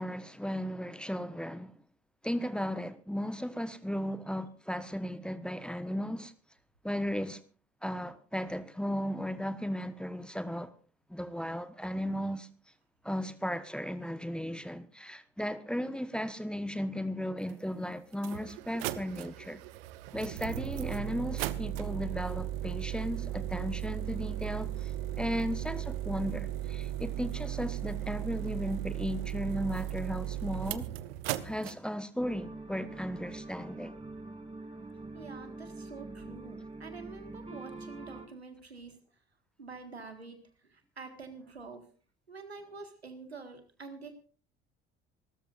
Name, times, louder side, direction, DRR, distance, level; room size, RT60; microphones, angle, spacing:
voice 1, 0.0-1.8 2.2-6.3 6.8-7.4 7.8-10.7 11.1-12.5 13.0-19.6 20.1-30.9 31.4-33.9, equal, 5° left, 1.2 m, -35 dB
sound 1, 17.5-17.6 18.1-31.7, right 13 dB, 70° right, 0.9 m, -36 dB
sound 2, 32.2-38.3, right 2 dB, 20° right, 3.1 m, -44 dB
voice 2, 35.1-39.0 39.6-41.9 42.3-44.1, right 4 dB, 90° right, 1.8 m, -47 dB
27.0 x 13.5 x 2.6 m
figure-of-eight pair, 55°, 31 cm